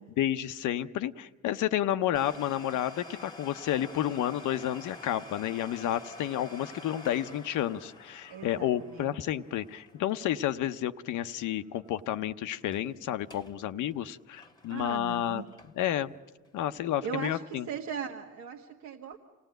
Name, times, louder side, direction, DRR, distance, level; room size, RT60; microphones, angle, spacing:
voice 1, 0.0-15.4 15.7-16.1 16.5-17.7, left 12 dB, 80° left, 10 dB, 0.7 m, -31 dB
Domestic sounds home sounds, 2.1-11.6 11.8-11.9 12.5-12.9 13.2-13.6 13.9-16.0 16.4-16.5 17.2-17.3, left 2 dB, 15° left, 1.4 m, -49 dB
voice 2, 8.3-9.1 14.7-15.5 17.0-19.2, right 7 dB, 70° right, 1 dB, 1.5 m, -38 dB
27.5 x 16.5 x 9.1 m, 1.4 s
cardioid pair, 90°, 30 cm